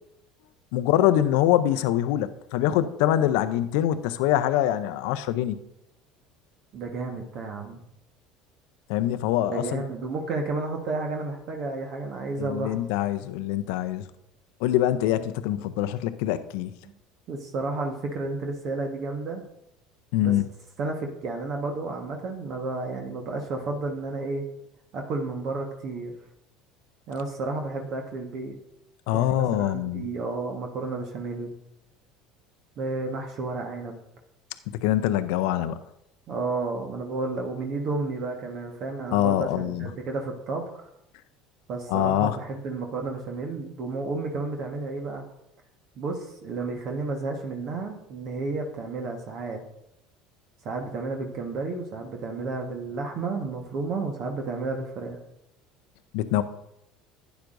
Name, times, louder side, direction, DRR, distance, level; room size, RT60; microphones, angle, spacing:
voice 1, 0.7-5.6 8.9-9.8 12.4-14.0 14.6-16.7 20.1-20.4 29.1-30.0 34.8-35.8 39.1-39.9 41.9-42.4 56.1-56.4, left 12 dB, 70° left, 12 dB, 0.5 m, -24 dB
voice 2, 6.7-7.8 9.5-12.8 17.3-19.4 20.2-20.3 20.8-24.4 24.9-26.1 27.1-28.6 29.1-31.5 32.8-34.0 36.3-40.9 41.7-45.2 46.0-49.6 50.6-55.2, right 3 dB, 55° right, 2 dB, 1.3 m, -32 dB
12.0 x 9.2 x 2.6 m, 0.81 s
hypercardioid pair, 75°, 0 cm